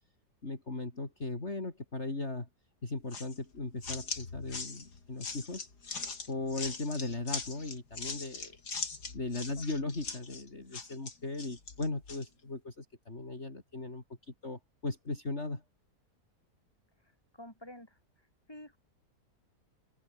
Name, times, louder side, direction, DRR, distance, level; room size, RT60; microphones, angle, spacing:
voice 1, 0.4-2.5 2.8-5.7 6.3-8.6 9.1-15.6, left 2 dB, 40° left, 4.3 m, -38 dB
sound 1, 3.1-12.3, left 4 dB, 90° left, 3.8 m, -41 dB
voice 2, 9.3-9.7 17.3-18.0 18.5-18.8, left 1 dB, 15° left, 7.0 m, -49 dB
open air
omnidirectional pair, 1.7 m